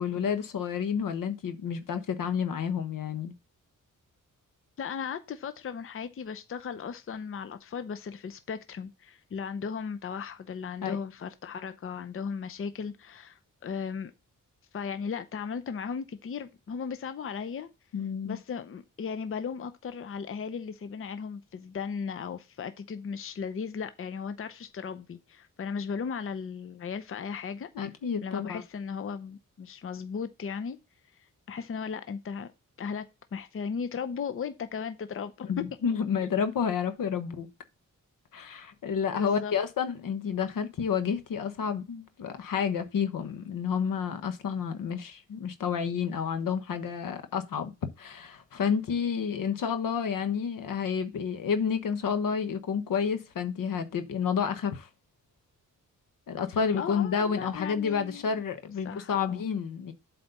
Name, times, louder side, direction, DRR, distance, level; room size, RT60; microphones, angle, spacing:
voice 1, 0.0-3.3 10.8-11.0 17.9-18.4 27.7-28.6 35.5-37.5 38.3-47.7 48.0-54.9 56.3-59.9, left 7 dB, 85° left, 1.2 m, -30 dB
voice 2, 4.8-14.1 14.7-17.7 18.2-27.7 28.2-30.8 31.2-32.5 32.8-33.1 33.3-35.6 39.1-39.5 56.8-58.3 58.8-59.4, left 6 dB, 40° left, 0.7 m, -36 dB
7.9 x 4.3 x 5.4 m
wide cardioid pair, 120°, 32 cm